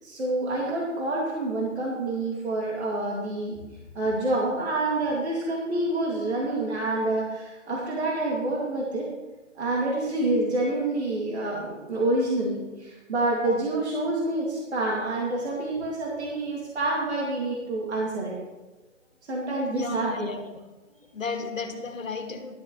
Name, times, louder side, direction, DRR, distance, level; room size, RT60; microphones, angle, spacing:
voice 1, 0.0-3.5 3.9-9.1 9.6-18.4 19.3-20.3, right 2 dB, 55° right, -4 dB, 2.6 m, -27 dB
voice 2, 19.7-20.4 21.1-22.5, left 4 dB, 75° left, 5 dB, 1.8 m, -33 dB
12.5 x 10.0 x 3.2 m, 1.1 s
hypercardioid pair, 160°, 39 cm